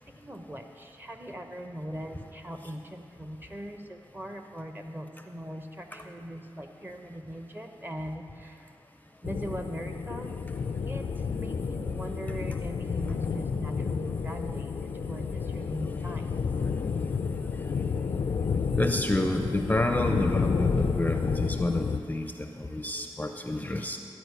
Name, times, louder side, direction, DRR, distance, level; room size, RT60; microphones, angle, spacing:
voice 1, 0.1-8.7 9.2-10.3 10.9-16.4, equal, 20° right, 5 dB, 1.0 m, -40 dB
sound 1, 9.2-22.0, left 5 dB, 75° left, 0.4 m, -30 dB
voice 2, 15.7-16.4 18.7-24.0, left 1 dB, 15° left, 5 dB, 0.6 m, -29 dB
12.5 x 4.6 x 8.1 m, 2.6 s
cardioid pair, 50°, 10 cm